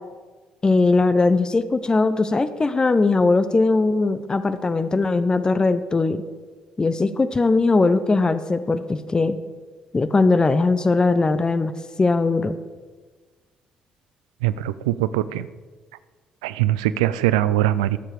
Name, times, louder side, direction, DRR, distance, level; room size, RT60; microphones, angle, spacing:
voice 1, 0.6-6.2 6.8-9.4 9.9-11.7 12.0-12.6, left 3 dB, 25° left, 12 dB, 0.7 m, -20 dB
voice 2, 14.4-15.5 16.4-18.0, right 13 dB, 70° right, 15 dB, 0.4 m, -22 dB
19.5 x 7.4 x 5.0 m, 1.4 s
figure-of-eight pair, 45°, 3 cm